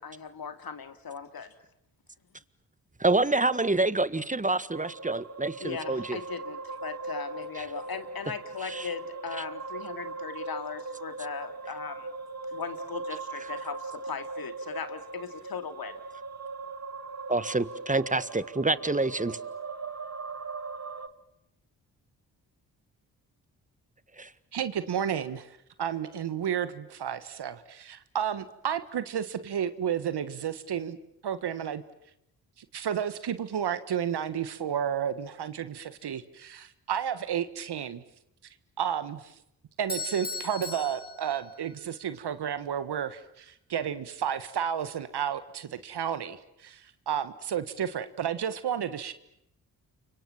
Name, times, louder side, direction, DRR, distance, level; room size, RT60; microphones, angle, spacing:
voice 1, 0.0-1.5 5.6-12.1 12.5-16.0, left 6 dB, 55° left, 9 dB, 2.8 m, -38 dB
voice 2, 3.0-6.2 7.6-7.7 8.7-8.9 17.3-19.4 24.2-24.3, right 2 dB, 20° right, 15 dB, 1.7 m, -27 dB
sound 1, 4.7-21.1, right 3 dB, 35° right, 2.1 m, -39 dB
voice 3, 24.5-25.5 25.8-31.0 31.2-31.8 32.6-38.0 38.8-39.3 39.8-49.1, right 9 dB, 65° right, 12 dB, 1.5 m, -32 dB
Bell / Doorbell, 39.9-42.0, left 2 dB, 20° left, 5.5 m, -38 dB
29.5 x 24.5 x 7.3 m, 0.80 s
supercardioid pair, 45°, 43 cm